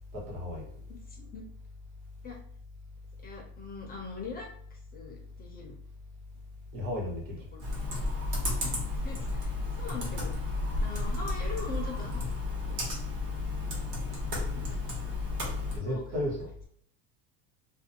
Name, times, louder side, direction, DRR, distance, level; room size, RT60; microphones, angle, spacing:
voice 1, 0.1-0.6 6.7-7.5 15.7-16.5, left 1 dB, 90° right, -2 dB, 1.4 m, -34 dB
voice 2, 0.9-1.4 2.2-2.4 3.2-5.7 7.5-7.6 8.6-12.3 12.7-12.9 14.5-14.8 15.1-15.2 15.7-16.0, left 4 dB, 20° left, 0 dB, 0.5 m, -43 dB
Computer keyboard, 7.6-15.8, left 3 dB, 55° right, 1.3 m, -33 dB
sound 1, 7.8-13.1, right 1 dB, 20° right, 0.9 m, -37 dB
2.6 x 2.2 x 2.7 m, 0.65 s
supercardioid pair, 120°, 49 cm